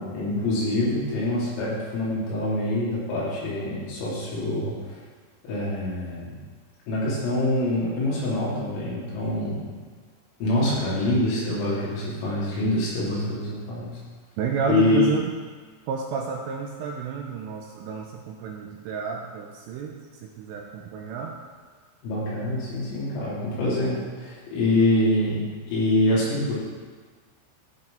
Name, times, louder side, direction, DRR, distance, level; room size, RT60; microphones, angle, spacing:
voice 1, 0.0-5.0 5.4-6.3 6.9-9.7 10.4-13.9 14.7-15.1 22.0-26.6, left 1 dB, 85° left, -8 dB, 5.5 m, -25 dB
voice 2, 14.4-15.3 15.9-21.4, right 6 dB, 80° right, 1 dB, 2.6 m, -31 dB
15.5 x 5.8 x 3.9 m, 1.5 s
omnidirectional pair, 5.7 m